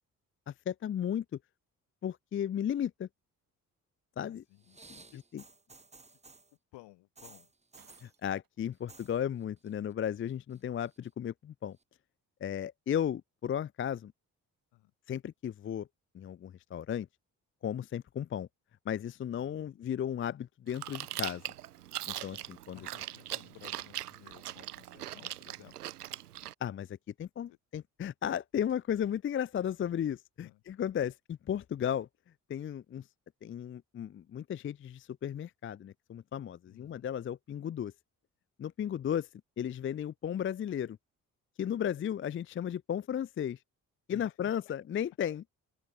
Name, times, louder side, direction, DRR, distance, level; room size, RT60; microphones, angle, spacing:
voice 1, 0.5-1.2 2.0-3.1 4.2-4.4 4.9-5.0 5.3-5.4 8.0-11.8 12.4-14.1 15.1-15.9 16.1-17.1 17.6-18.5 18.9-21.4 22.1-22.8 26.6-32.1 32.5-33.1 33.4-37.9 38.6-39.3 39.6-41.0 41.6-43.6 44.1-45.5, left 9 dB, 30° left, 0.6 m, -35 dB
voice 2, 4.5-4.8 5.1-5.2 6.7-7.5 14.7-14.9 19.4-19.8 22.7-25.8 27.5-27.6 30.4-30.6 36.7-37.1 44.1-44.7, left 19 dB, 65° left, 6.6 m, -56 dB
sound 1, 4.6-6.5 7.2-8.1 8.7-9.2 9.4-9.9 10.3-11.0 11.8-11.9, right 3 dB, 15° right, 1.4 m, -55 dB
Shatter, 7.8-8.6, right 9 dB, 50° right, 3.4 m, -64 dB
Chewing mastication, 20.7-26.5, right 13 dB, 85° right, 0.6 m, -41 dB
open air
figure-of-eight pair, 40°, 45 cm